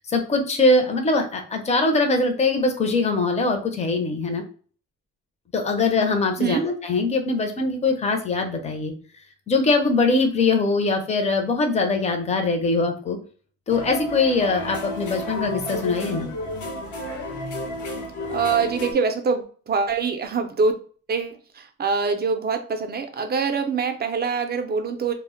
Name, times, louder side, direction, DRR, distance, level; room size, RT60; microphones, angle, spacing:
voice 1, 0.1-4.4 5.5-8.9 9.5-13.2 13.7-16.3, left 3 dB, 25° left, 4 dB, 0.5 m, -22 dB
sound 1, 13.7-18.9, left 1 dB, 90° left, 0.7 m, -32 dB
voice 2, 18.3-20.7 21.1-25.1, right 5 dB, 35° right, 6 dB, 0.4 m, -24 dB
2.1 x 2.0 x 3.6 m, 0.43 s
cardioid pair, 125°, 29 cm